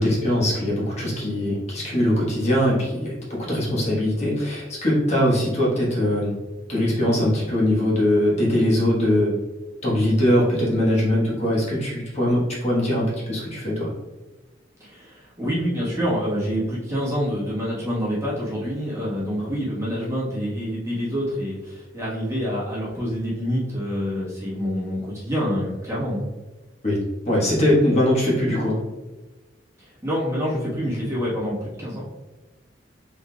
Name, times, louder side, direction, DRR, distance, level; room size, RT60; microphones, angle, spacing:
voice 1, 0.0-6.3 6.7-9.3 9.8-13.9 26.8-27.0 27.3-28.8, left 1 dB, 35° left, -5 dB, 1.2 m, -21 dB
voice 2, 14.8-26.2 29.8-32.0, equal, 15° right, -7 dB, 1.2 m, -27 dB
4.2 x 3.6 x 2.3 m, 1.2 s
head